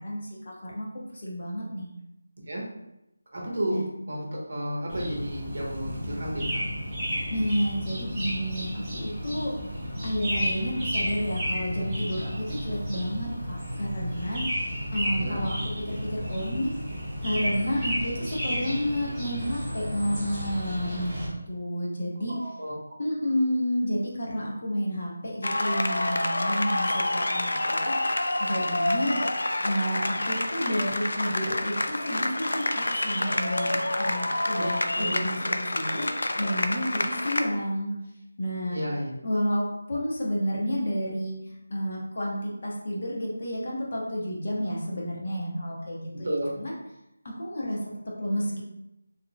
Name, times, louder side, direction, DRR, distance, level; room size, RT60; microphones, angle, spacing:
voice 1, 0.0-1.9 3.7-3.9 7.3-9.5 10.0-16.7 17.2-22.4 23.0-28.0 28.4-29.2 29.6-36.1 36.4-37.9 38.4-38.8 39.2-46.7 47.4-48.6, equal, 45° left, -3 dB, 0.9 m, -30 dB
voice 2, 3.3-3.8 4.1-6.6 15.1-15.4 22.3-22.7 34.5-35.2 38.7-39.1 46.2-46.5, equal, 55° right, -2 dB, 1.0 m, -32 dB
sound 1, 4.9-21.3, equal, 5° right, 0.9 m, -32 dB
sound 2, 25.4-37.4, left 1 dB, 85° left, 0.4 m, -28 dB
4.1 x 3.0 x 2.2 m, 0.89 s
figure-of-eight pair, 175°, 0 cm